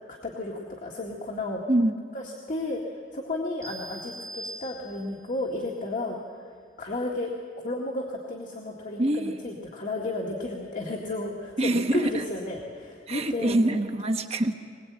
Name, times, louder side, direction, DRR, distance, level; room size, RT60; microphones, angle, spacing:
voice 1, 0.0-1.6 2.1-2.8 3.1-6.2 6.8-7.3 7.6-13.6, left 2 dB, 45° left, -1 dB, 1.9 m, -33 dB
sound 1, 3.6-5.3, right 1 dB, 20° right, 2.3 m, -41 dB
voice 2, 9.0-9.4 11.6-12.2 13.1-14.5, right 1 dB, 35° right, 4 dB, 1.1 m, -25 dB
21.0 x 21.0 x 8.6 m, 2.1 s
head